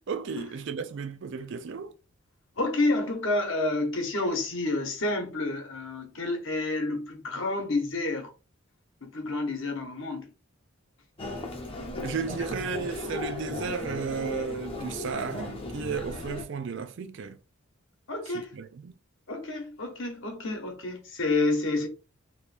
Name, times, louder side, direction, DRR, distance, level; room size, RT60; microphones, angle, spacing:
voice 1, 0.0-1.9 12.0-17.4 18.3-18.9, right 5 dB, 55° right, 0.4 m, -34 dB
voice 2, 2.6-8.3 9.0-10.3 18.1-18.5 19.3-21.9, left 2 dB, 55° left, 0.9 m, -29 dB
Human voice, 11.2-16.4, left 2 dB, 25° left, 0.6 m, -36 dB
2.9 x 2.5 x 3.3 m
head